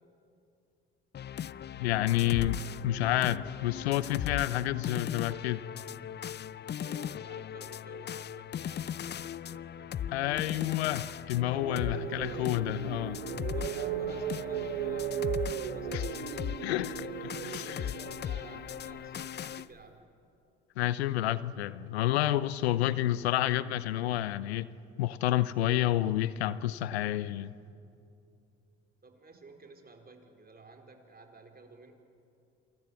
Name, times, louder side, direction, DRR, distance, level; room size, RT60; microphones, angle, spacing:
sound 1, 1.1-19.7, left 9 dB, 35° left, 0.5 m, -38 dB
voice 1, 1.7-5.6 10.1-13.2 15.9-16.0 16.6-17.8 20.8-24.7 25.0-27.5, left 13 dB, 90° left, 0.7 m, -29 dB
voice 2, 6.7-10.4 12.0-12.5 13.5-16.2 17.6-20.0 29.0-31.9, right 3 dB, 30° right, 4.6 m, -53 dB
sound 2, 11.4-19.5, right 11 dB, 85° right, 0.8 m, -37 dB
28.0 x 23.5 x 7.1 m
hypercardioid pair, 55°, 31 cm